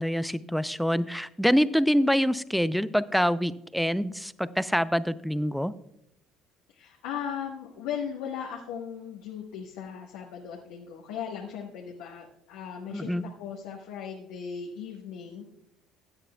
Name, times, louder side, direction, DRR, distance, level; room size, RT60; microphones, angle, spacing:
voice 1, 0.0-5.7 12.9-13.2, equal, ahead, 16 dB, 0.5 m, -25 dB
voice 2, 6.7-13.1 13.4-15.6, left 8 dB, 75° left, -2 dB, 1.4 m, -37 dB
16.0 x 9.7 x 2.3 m, 0.81 s
hypercardioid pair, 60°, 0 cm